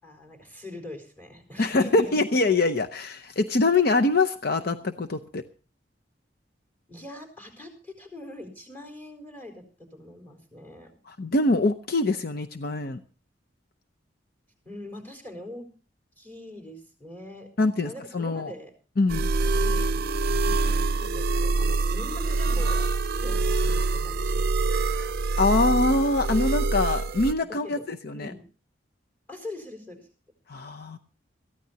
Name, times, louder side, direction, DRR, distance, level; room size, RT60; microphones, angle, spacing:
voice 1, 0.0-2.3 6.9-9.6 9.9-10.9 14.6-15.7 16.2-17.5 17.8-18.7 19.6-19.9 21.0-22.9 23.2-24.4 27.4-27.8 28.1-28.5 29.3-30.1, left 1 dB, 10° left, 5 dB, 4.4 m, -42 dB
voice 2, 1.6-5.4 11.1-13.0 17.6-18.5 19.0-19.3 24.7-28.3 30.5-31.0, left 2 dB, 55° left, 7 dB, 0.7 m, -24 dB
sound 1, 19.1-27.3, right 3 dB, 60° right, 0.6 m, -25 dB
22.5 x 14.5 x 2.9 m, 0.36 s
head